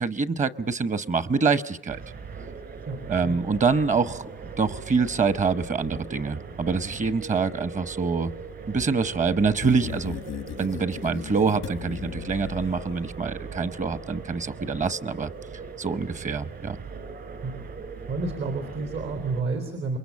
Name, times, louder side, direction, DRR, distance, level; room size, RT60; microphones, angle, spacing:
voice 1, 0.0-2.0 3.1-4.3 4.6-8.3 8.7-10.2 10.6-15.3 15.8-16.8, right 5 dB, 40° right, 15 dB, 1.0 m, -25 dB
sound 1, 1.9-19.4, right 5 dB, 55° right, 2.8 m, -40 dB
voice 2, 2.9-3.4 17.4-17.6 18.1-20.0, right 3 dB, 80° right, 6 dB, 3.7 m, -30 dB
sound 2, 9.6-13.3, left 10 dB, 90° left, 1.0 m, -38 dB
28.0 x 22.5 x 8.4 m, 0.79 s
cardioid pair, 130°, 20 cm